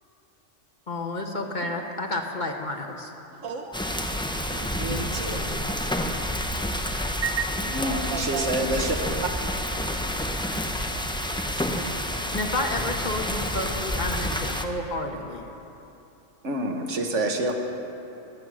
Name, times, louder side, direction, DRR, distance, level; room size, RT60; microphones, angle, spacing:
voice 1, 0.9-3.1 12.3-15.4, left 2 dB, 40° left, 2 dB, 1.1 m, -30 dB
voice 2, 3.3-4.0 4.3-5.6 6.0-6.7 7.7-12.3, right 4 dB, 80° right, 2 dB, 1.5 m, -39 dB
sound 1, 3.7-14.6, left 1 dB, 5° left, 0.4 m, -29 dB
voice 3, 7.2-9.0 16.4-17.5, right 2 dB, 65° right, 3 dB, 1.5 m, -27 dB
20.0 x 8.0 x 6.1 m, 2.9 s
omnidirectional pair, 1.3 m